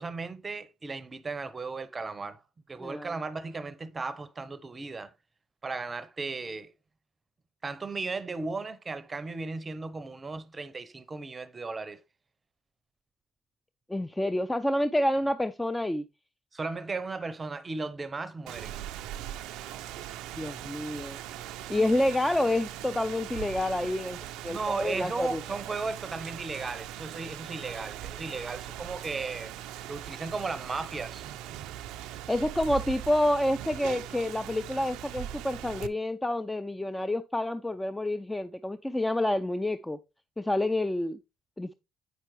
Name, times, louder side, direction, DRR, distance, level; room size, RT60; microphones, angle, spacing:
voice 1, 0.0-2.4 2.7-5.1 5.6-6.7 7.6-12.0 16.5-18.8 24.4-29.5 29.9-31.2, right 3 dB, 30° right, 0.7 m, -36 dB
voice 2, 2.8-3.1 13.9-16.0 20.4-21.2 21.7-25.4 32.3-40.0 40.4-41.2 41.6-41.7, left 1 dB, 10° left, 0.5 m, -28 dB
Rain, 18.5-35.9, right 12 dB, 75° right, 0.4 m, -40 dB
8.2 x 5.8 x 3.1 m
hypercardioid pair, 60°, 0 cm